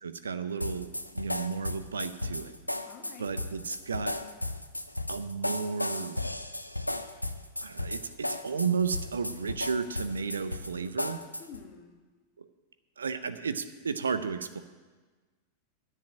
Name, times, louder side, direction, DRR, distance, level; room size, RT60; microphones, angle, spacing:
voice 1, 0.0-2.6 3.2-4.1 5.1-6.2 7.6-11.2 12.4-12.5 13.0-14.6, right 5 dB, 70° right, 11 dB, 0.6 m, -33 dB
sound 1, 0.6-11.6, left 1 dB, 85° left, 0.5 m, -35 dB
voice 2, 2.8-3.4 11.4-12.0, left 6 dB, 40° left, 4 dB, 1.7 m, -48 dB
10.0 x 7.5 x 8.8 m, 1.3 s
figure-of-eight pair, 90°, 0 cm